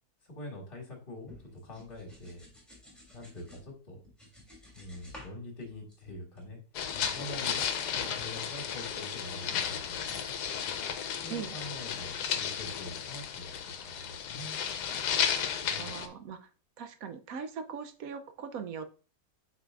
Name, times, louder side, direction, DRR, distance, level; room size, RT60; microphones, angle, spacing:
voice 1, 0.2-2.4 3.1-4.0 4.7-6.6 6.9-7.6 7.9-10.2 11.2-13.6 13.8-14.6 15.7-16.0, left 1 dB, 35° left, 0 dB, 2.0 m, -44 dB
sound 1, 1.3-3.6 4.0-5.3 5.6-6.5 6.9-8.1, left 1 dB, ahead, 2.6 m, -53 dB
sound 2, 6.7-16.1, left 8 dB, 75° left, 1.3 m, -34 dB
voice 2, 15.8-16.5 16.8-18.9, right 7 dB, 65° right, 9 dB, 1.0 m, -40 dB
8.2 x 5.0 x 2.4 m, 0.36 s
omnidirectional pair, 1.8 m